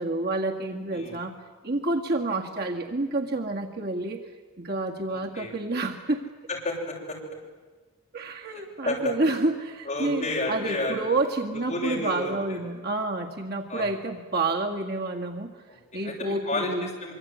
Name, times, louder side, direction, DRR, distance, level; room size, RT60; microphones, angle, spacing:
voice 1, 0.0-1.3 1.6-4.3 4.6-6.2 8.1-15.5 15.9-16.9, right 2 dB, 45° right, 2 dB, 2.0 m, -29 dB
voice 2, 5.1-5.5 6.5-7.2 8.5-9.1 9.9-11.0 11.5-12.6 13.7-13.9 15.7-17.1, left 2 dB, 35° left, -2 dB, 7.1 m, -32 dB
25.5 x 24.5 x 9.4 m, 1.3 s
head